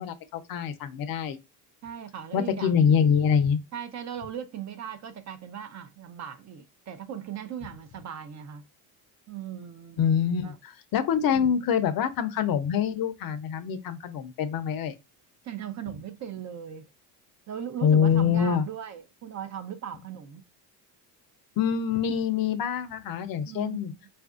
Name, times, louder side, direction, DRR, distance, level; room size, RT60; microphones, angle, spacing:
voice 1, 0.0-1.4 2.3-3.6 10.0-14.9 17.8-18.7 21.6-23.9, left 7 dB, 50° left, 0.6 m, -25 dB
voice 2, 1.8-2.8 3.7-8.6 9.3-10.0 10.4-10.6 11.3-11.5 15.4-16.8 17.5-20.4 23.4-24.0, right 9 dB, 40° right, 0.6 m, -38 dB
4.2 x 2.5 x 2.4 m
supercardioid pair, 95°, 45 cm